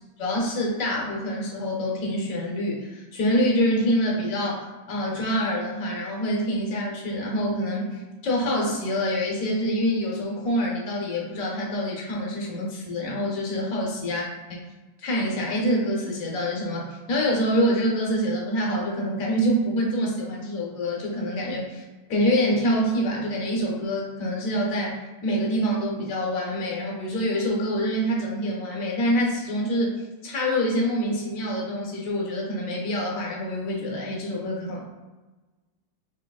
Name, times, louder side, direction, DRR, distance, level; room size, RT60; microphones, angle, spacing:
voice 1, 0.2-14.2 14.5-14.6 15.0-21.8 22.1-29.9 30.2-34.9, equal, 55° left, -2 dB, 1.1 m, -26 dB
5.8 x 3.0 x 2.3 m, 1.2 s
omnidirectional pair, 2.1 m